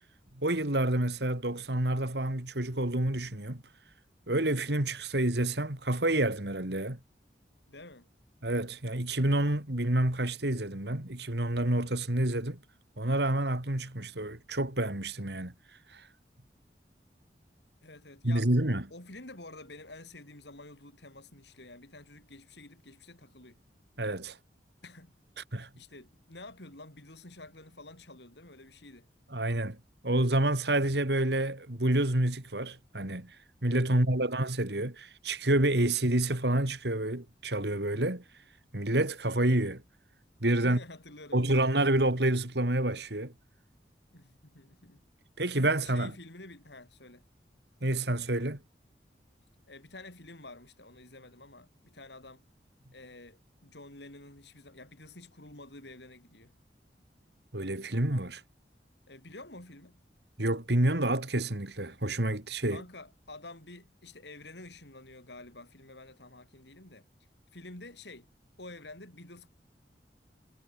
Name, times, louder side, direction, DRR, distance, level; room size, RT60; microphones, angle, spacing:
voice 1, 0.4-3.6 4.3-7.0 8.4-12.6 13.0-15.5 15.9-16.0 18.2-18.8 24.0-24.4 25.5-25.7 29.3-29.8 30.0-33.3 33.6-38.2 38.7-39.8 40.4-40.8 41.3-43.3 45.4-46.1 47.8-48.6 57.5-58.4 60.4-62.8, right 1 dB, 70° right, 2.9 m, -28 dB
voice 2, 7.7-8.1 17.8-23.6 24.8-25.1 25.8-29.1 33.9-34.1 40.6-41.5 44.1-45.0 45.8-47.2 49.7-52.4 52.9-56.5 59.1-60.0 62.7-67.1 67.5-68.3 68.6-69.5, left 2 dB, 75° left, 5.8 m, -49 dB
head